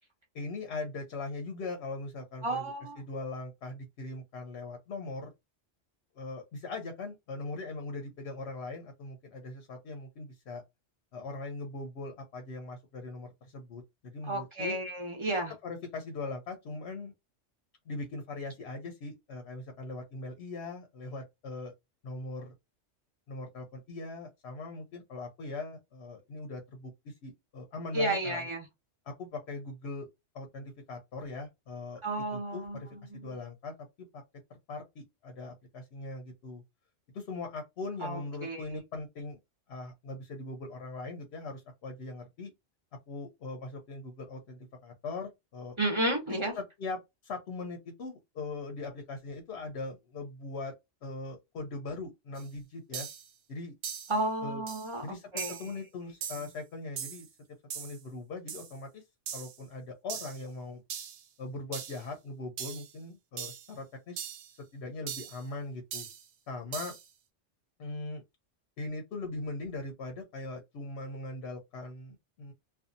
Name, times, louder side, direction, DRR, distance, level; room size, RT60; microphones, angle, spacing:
voice 1, 0.3-2.6 3.0-5.3 6.2-10.6 11.1-14.8 15.6-17.1 17.9-21.7 22.0-22.5 23.3-28.5 29.1-30.1 30.3-32.0 32.3-34.2 34.5-36.6 37.1-39.4 39.7-42.5 43.1-45.8 46.3-50.7 51.0-53.1 53.5-53.7 54.4-54.6 55.0-57.3 57.7-59.0 59.3-60.8 61.4-64.2 64.7-66.1 66.5-66.9 67.8-68.2 68.8-72.5, left 3 dB, 65° left, 0.8 m, -40 dB
voice 2, 2.4-3.0 14.3-15.5 27.9-28.7 32.0-33.3 38.0-38.8 45.8-46.5 54.1-55.6, right 1 dB, 25° right, 0.9 m, -32 dB
sound 1, 52.4-52.5 52.9-53.3 53.8-54.2 54.7-54.9 55.4-55.7 56.2-56.5 57.0-57.3 57.7-58.0 58.5-58.7 59.3-59.6 60.1-60.4 60.9-61.2 61.7-62.0 62.6-62.9 63.4-63.7 64.2-64.5 65.1-65.4 65.9-66.3 66.7-67.1, right 8 dB, 85° right, 1.0 m, -40 dB
2.6 x 2.3 x 2.5 m
omnidirectional pair, 1.3 m